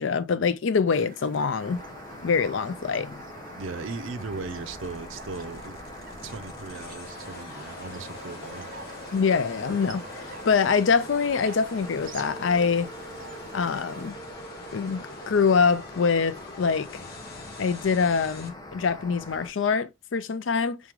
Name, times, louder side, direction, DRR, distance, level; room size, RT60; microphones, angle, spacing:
voice 1, 0.0-1.8 2.2-3.2 9.1-10.0 10.3-12.9 13.5-14.2 14.7-17.0 17.6-20.8, left 5 dB, 70° left, 0.5 m, -24 dB
sound 1, 0.9-14.1, right 3 dB, 45° right, 0.8 m, -47 dB
sound 2, 1.6-19.5, left 1 dB, 20° left, 0.9 m, -43 dB
voice 2, 3.6-5.8 6.2-8.7, right 4 dB, 80° right, 0.6 m, -37 dB
sound 3, 4.2-18.5, left 1 dB, 55° left, 1.0 m, -45 dB
3.7 x 3.7 x 3.1 m
head